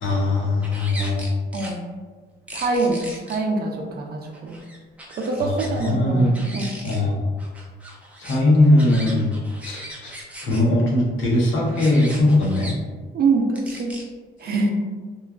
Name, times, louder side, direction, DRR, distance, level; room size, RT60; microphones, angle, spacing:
voice 1, 0.0-1.3 5.4-6.4 6.8-7.2 8.2-9.3 9.6-10.1 10.4-12.7, left 1 dB, 75° left, -4 dB, 0.9 m, -20 dB
sound 1, 0.6-1.7 2.5-3.4 4.3-5.9 6.2-7.0 7.4-10.6 11.6-12.7 13.6-14.0, right 1 dB, 5° right, 0.5 m, -39 dB
voice 2, 2.5-4.6 5.2-6.7 13.1-13.9 14.4-14.7, right 3 dB, 50° right, 1 dB, 0.5 m, -24 dB
3.0 x 2.2 x 2.4 m, 1.4 s
cardioid pair, 90°, 20 cm